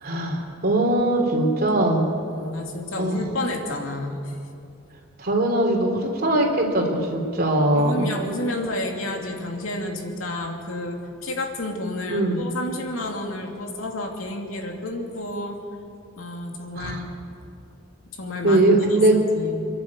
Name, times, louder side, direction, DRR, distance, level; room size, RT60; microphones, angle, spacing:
voice 1, 0.0-2.1 3.0-3.2 5.2-8.1 12.1-12.4 16.8-17.0 18.4-19.2, right 1 dB, 50° right, 2 dB, 3.3 m, -21 dB
voice 2, 2.2-4.4 7.7-15.6 16.2-17.1 18.2-19.6, left 1 dB, 85° left, 1 dB, 2.7 m, -30 dB
28.0 x 11.0 x 8.3 m, 2.5 s
head